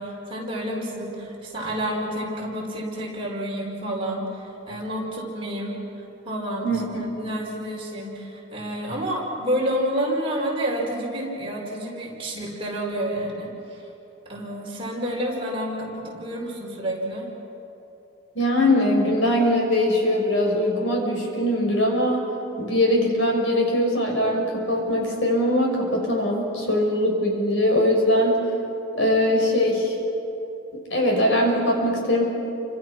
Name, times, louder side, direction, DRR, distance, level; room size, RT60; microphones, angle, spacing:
voice 1, 0.0-5.8 6.3-13.8 14.3-17.3, equal, 25° right, -3 dB, 5.2 m, -29 dB
voice 2, 6.6-7.0 18.3-22.3 22.6-28.4 29.0-29.9 30.7-32.3, left 1 dB, 65° left, 0 dB, 6.1 m, -21 dB
30.0 x 26.0 x 6.1 m, 3.0 s
head